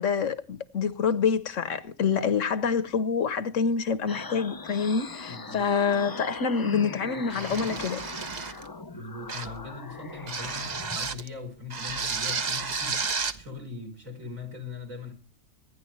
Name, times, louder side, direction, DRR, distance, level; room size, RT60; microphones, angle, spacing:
voice 1, 0.0-8.0, left 6 dB, 70° left, 1.3 m, -26 dB
sound 1, 4.1-11.0, left 3 dB, 35° left, 0.3 m, -40 dB
voice 2, 5.3-5.6 8.9-15.1, left 4 dB, 70° right, 4.6 m, -40 dB
sound 2, 7.3-8.7 9.3-9.6 10.3-11.3 11.7-13.4, right 5 dB, 35° right, 0.9 m, -32 dB
26.0 x 10.0 x 3.2 m
omnidirectional pair, 1.4 m